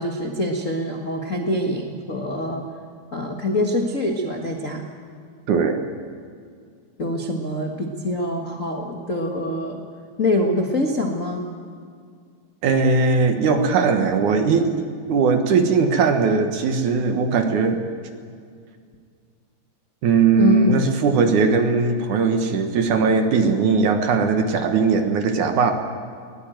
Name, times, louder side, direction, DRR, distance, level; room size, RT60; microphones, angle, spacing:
voice 1, 0.0-2.6 3.1-4.8 7.0-9.8 10.2-11.5 20.4-20.8, left 1 dB, 45° left, 1 dB, 1.0 m, -24 dB
voice 2, 5.5-5.8 12.6-17.8 20.0-25.7, right 4 dB, 65° right, 6 dB, 2.6 m, -19 dB
21.5 x 18.0 x 9.1 m, 2.1 s
omnidirectional pair, 4.2 m